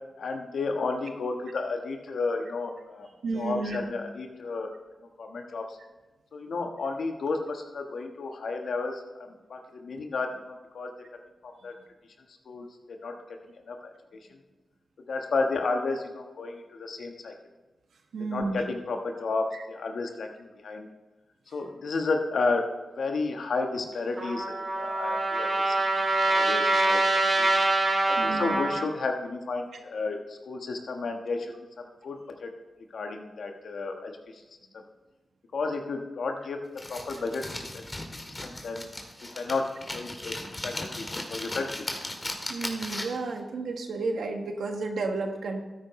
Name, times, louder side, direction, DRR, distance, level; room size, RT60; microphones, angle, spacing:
voice 1, 0.2-3.1 3.3-4.7 5.2-5.8 6.3-10.9 11.4-11.8 12.5-13.2 13.7-13.8 14.3-14.4 15.1-17.3 18.3-20.9 21.5-22.7 23.0-25.9 26.2-27.5 28.0-32.5 32.9-34.4 35.5-36.6 36.9-37.9 38.4-38.8 39.2-40.4 40.6-41.9, left 3 dB, 75° left, 4 dB, 1.3 m, -32 dB
voice 2, 3.2-3.8 18.1-18.6 19.5-19.6 28.2-28.6 42.5-45.6, right 3 dB, 85° right, 4 dB, 1.3 m, -32 dB
Trumpet, 24.2-28.9, right 2 dB, 55° right, 2.4 m, -25 dB
sound 1, 36.8-43.3, left 1 dB, 30° left, 2.0 m, -37 dB
13.0 x 10.0 x 3.1 m, 1.2 s
cardioid pair, 50°, 0 cm